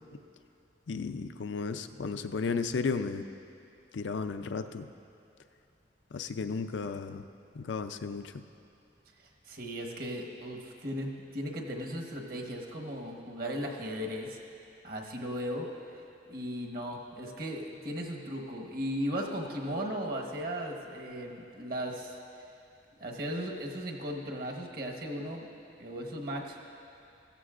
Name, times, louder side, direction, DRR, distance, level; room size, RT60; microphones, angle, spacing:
voice 1, 0.9-3.2 3.9-4.9 6.1-7.2 7.5-8.4, left 4 dB, 80° left, 8 dB, 0.5 m, -34 dB
voice 2, 9.4-14.4 14.8-15.7 16.3-22.2 23.0-25.5 25.8-26.6, equal, 55° right, 1 dB, 1.2 m, -36 dB
15.5 x 14.0 x 2.5 m, 2.6 s
head